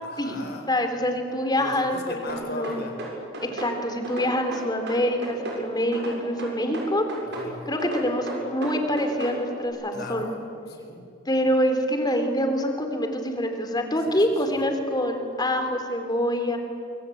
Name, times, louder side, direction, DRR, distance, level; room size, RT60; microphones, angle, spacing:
voice 1, 0.0-0.7 1.6-3.0 7.4-7.6 9.9-11.1 14.1-14.6, left 2 dB, 55° left, 5 dB, 4.4 m, -38 dB
voice 2, 0.7-1.9 2.3-2.8 3.4-7.1 7.6-10.3 11.2-16.6, equal, 20° left, 6 dB, 3.2 m, -25 dB
sound 1, 2.3-3.7 4.0-5.6 5.9-7.5 7.8-9.4, right 1 dB, 60° right, 6.8 m, -34 dB
25.0 x 24.5 x 8.6 m, 2.7 s
head